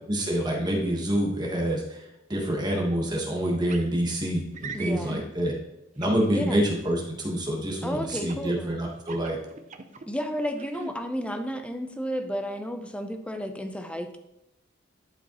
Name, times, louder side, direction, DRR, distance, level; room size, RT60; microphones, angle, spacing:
voice 1, 0.1-2.0 2.3-5.5 6.0-9.4, equal, 20° right, -2 dB, 1.3 m, -27 dB
sound 1, 3.7-3.9 4.5-5.2 6.0-6.6 8.1-8.5 9.0-10.1 10.5-10.9, right 4 dB, 40° right, 0.5 m, -39 dB
voice 2, 4.7-5.3 6.2-6.7 7.8-8.8 10.1-14.2, equal, 5° left, 6 dB, 0.6 m, -32 dB
11.0 x 5.0 x 3.0 m, 0.89 s
head